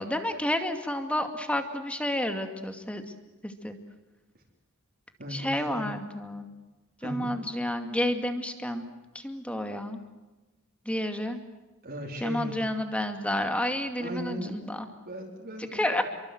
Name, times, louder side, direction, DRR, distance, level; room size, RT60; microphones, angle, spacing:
voice 1, 0.0-3.0 3.4-3.8 5.3-6.5 7.0-8.8 9.1-10.0 10.9-11.4 12.2-14.9 15.7-16.0, left 1 dB, 5° left, 6 dB, 2.3 m, -30 dB
voice 2, 5.2-5.9 7.0-7.3 11.8-12.6 14.0-14.7 15.1-16.0, equal, 45° right, -2 dB, 4.2 m, -37 dB
29.0 x 23.5 x 8.0 m, 1.1 s
head